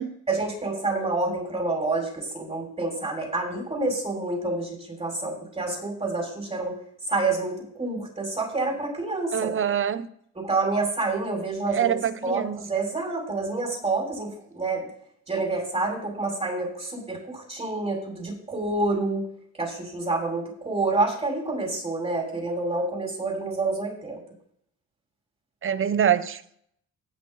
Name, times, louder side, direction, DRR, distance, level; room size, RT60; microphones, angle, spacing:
voice 1, 0.3-6.8 7.1-9.6 10.4-12.0 12.2-14.9 15.3-19.3 19.6-24.2, right 3 dB, 20° right, 6.0 m, -28 dB
voice 2, 9.3-10.1 11.7-12.6 25.6-26.4, right 9 dB, 45° right, 0.8 m, -25 dB
18.5 x 6.8 x 4.0 m
cardioid pair, 90°, 30 cm